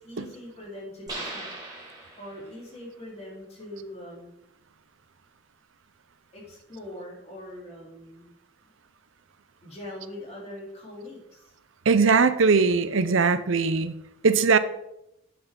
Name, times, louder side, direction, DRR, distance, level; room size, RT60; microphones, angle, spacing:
voice 1, 0.0-1.5 2.2-4.3 6.3-8.3 9.6-11.5, left 1 dB, 30° left, -4 dB, 3.8 m, -42 dB
sound 1, 1.1-2.6, right 2 dB, 20° right, 4.0 m, -38 dB
voice 2, 11.9-13.9 14.2-14.6, right 4 dB, 80° right, 13 dB, 0.6 m, -20 dB
8.1 x 7.6 x 5.3 m, 0.83 s
head